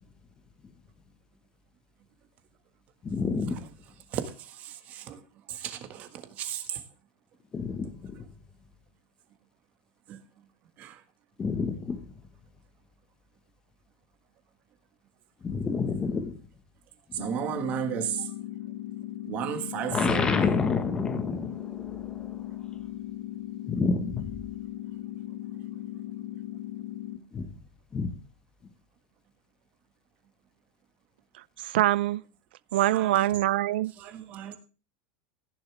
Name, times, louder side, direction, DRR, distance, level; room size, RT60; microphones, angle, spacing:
voice 1, 3.0-3.6 7.5-8.2 11.4-12.0 15.4-16.4 19.9-22.5 23.6-24.3 27.3-27.5 27.9-28.1, left 5 dB, 15° left, 1.2 m, -29 dB
voice 2, 4.1-5.2 5.5-6.8 10.1-10.2 10.8-11.0 17.1-18.3 19.2-20.3 32.9-33.3 34.0-34.6, right 9 dB, 30° right, 1.6 m, -34 dB
sound 1, 17.2-27.2, left 13 dB, 55° left, 1.5 m, -38 dB
voice 3, 31.6-32.2 32.7-33.9, right 15 dB, 80° right, 0.5 m, -24 dB
15.5 x 10.5 x 3.3 m
supercardioid pair, 180°, 5 cm